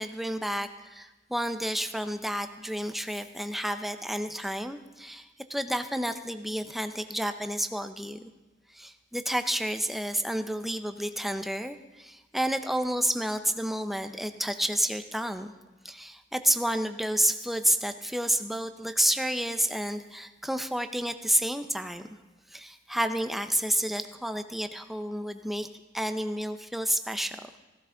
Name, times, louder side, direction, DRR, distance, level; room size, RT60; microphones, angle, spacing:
voice 1, 0.0-8.3 8.7-15.5 15.8-22.1 22.5-25.7 25.9-27.4, equal, ahead, 9 dB, 0.6 m, -30 dB
15.5 x 14.0 x 3.8 m, 1.1 s
head